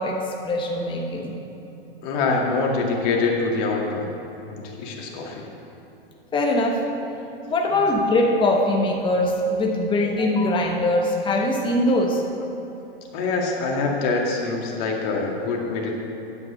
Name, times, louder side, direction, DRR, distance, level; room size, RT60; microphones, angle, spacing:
voice 1, 0.0-1.4 6.3-6.8 7.5-12.2, left 1 dB, 15° left, -1 dB, 1.3 m, -22 dB
voice 2, 2.0-4.1 4.5-5.4 7.7-7.8 13.1-15.9, left 3 dB, 50° left, 0 dB, 2.2 m, -25 dB
9.6 x 8.1 x 6.5 m, 3.0 s
hypercardioid pair, 125°, 30 cm